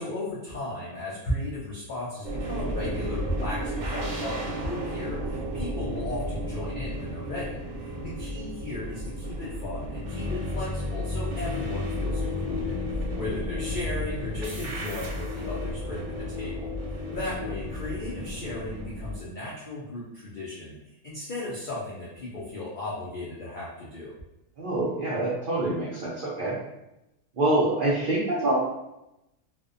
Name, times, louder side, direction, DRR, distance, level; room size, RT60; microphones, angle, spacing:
voice 1, 0.0-24.1, left 2 dB, 80° left, -6 dB, 0.4 m, -36 dB
sound 1, 2.2-19.2, left 1 dB, 65° right, 0.9 m, -32 dB
voice 2, 24.6-26.6 27.4-28.6, right 1 dB, 85° right, -5 dB, 0.4 m, -26 dB
2.5 x 2.1 x 2.4 m, 0.92 s
omnidirectional pair, 1.5 m